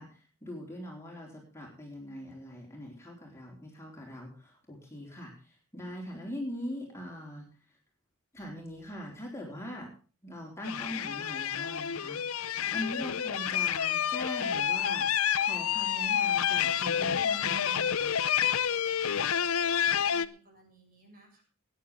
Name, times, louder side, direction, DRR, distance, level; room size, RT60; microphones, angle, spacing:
voice 1, 0.0-7.5 8.3-9.9 10.2-18.2, equal, 10° left, -1 dB, 4.1 m, -42 dB
sound 1, 10.6-20.3, left 8 dB, 65° left, 0.7 m, -29 dB
voice 2, 19.6-21.4, right 1 dB, 40° right, 1 dB, 6.7 m, -56 dB
20.0 x 10.0 x 3.6 m, 0.37 s
head